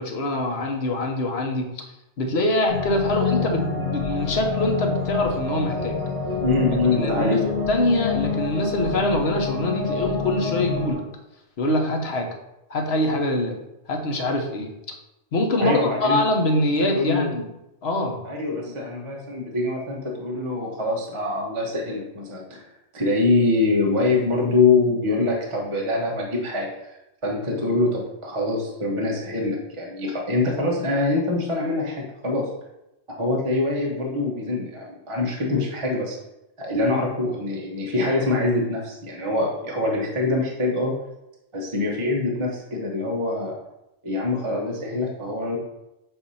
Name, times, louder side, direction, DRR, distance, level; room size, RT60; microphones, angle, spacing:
voice 1, 0.0-1.8 2.2-6.0 7.0-7.4 7.7-11.0 11.6-12.3 12.7-13.6 13.9-14.7 15.3-17.5 17.8-18.2, left 1 dB, 65° left, 2 dB, 1.2 m, -24 dB
sound 1, 2.7-10.9, left 5 dB, 45° right, 2.8 m, -27 dB
voice 2, 6.4-7.4 15.6-16.2 16.8-17.3 18.2-22.6 22.9-26.7 27.2-32.5 33.2-36.2 36.6-40.9 41.5-43.6 44.0-45.6, left 2 dB, 30° right, -2 dB, 1.1 m, -24 dB
7.9 x 2.8 x 5.5 m, 0.92 s
omnidirectional pair, 1.2 m